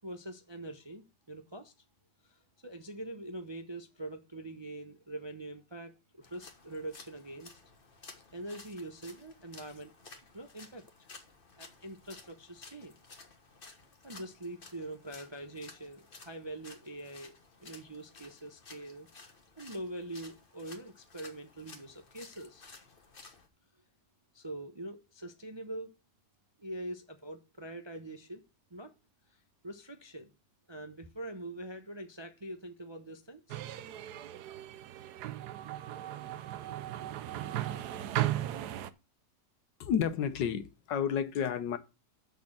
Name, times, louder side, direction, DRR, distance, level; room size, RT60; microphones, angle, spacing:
voice 1, 0.0-1.7 2.2-7.5 8.3-9.9 10.3-10.8 11.6-12.9 14.0-17.3 17.6-19.1 19.6-22.6 24.3-26.0 26.6-28.4 28.7-28.9 29.6-30.3 30.7-33.6, right 1 dB, 30° right, 0.5 m, -44 dB
sound 1, 6.2-23.5, left 3 dB, 35° left, 1.4 m, -54 dB
sound 2, 33.5-38.9, right 13 dB, 70° right, 1.2 m, -36 dB
voice 2, 39.8-41.8, left 8 dB, 80° left, 1.6 m, -31 dB
6.8 x 6.5 x 7.4 m
omnidirectional pair, 1.9 m